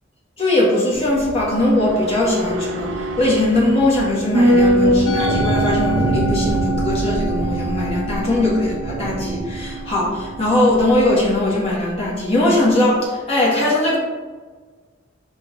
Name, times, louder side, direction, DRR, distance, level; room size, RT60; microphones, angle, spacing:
voice 1, 0.4-2.9 3.2-14.0, left 1 dB, 35° left, -7 dB, 1.5 m, -19 dB
sound 1, 0.9-11.4 11.7-11.8, right 1 dB, 70° right, 0.4 m, -23 dB
Musical instrument, 5.1-11.5, right 3 dB, 85° left, 0.7 m, -27 dB
3.7 x 3.6 x 3.5 m, 1.4 s
head